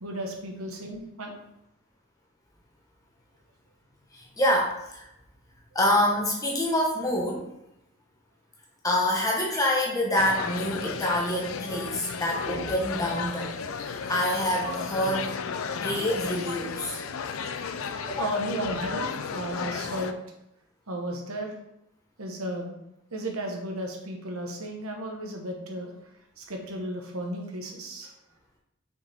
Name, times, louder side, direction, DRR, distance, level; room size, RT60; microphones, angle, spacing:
voice 1, 0.0-1.3 18.2-20.1 20.9-21.5 22.2-22.7 23.1-25.9 26.4-28.1, right 1 dB, 85° right, 2 dB, 1.3 m, -34 dB
voice 2, 4.1-5.1 5.7-7.5 8.8-15.3 15.7-17.0 18.1-18.4, left 1 dB, 15° left, -2 dB, 1.2 m, -26 dB
sound 1, 10.2-20.1, left 5 dB, 75° left, 0.4 m, -34 dB
5.9 x 5.2 x 3.6 m, 0.83 s
head